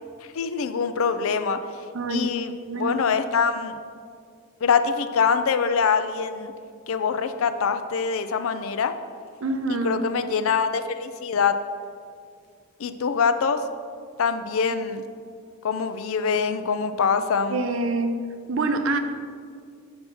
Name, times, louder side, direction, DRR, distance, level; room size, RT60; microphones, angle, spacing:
voice 1, 0.3-1.6 2.1-3.8 4.6-6.5 6.9-8.9 9.8-11.6 12.8-13.6 14.2-15.0 15.6-17.6, left 6 dB, 70° left, 10 dB, 0.4 m, -24 dB
voice 2, 1.9-2.3 2.6-3.0 9.4-10.0 14.7-14.8 17.5-18.1 18.5-19.0, right 2 dB, 60° right, 7 dB, 0.5 m, -26 dB
5.9 x 5.4 x 5.5 m, 2.2 s
head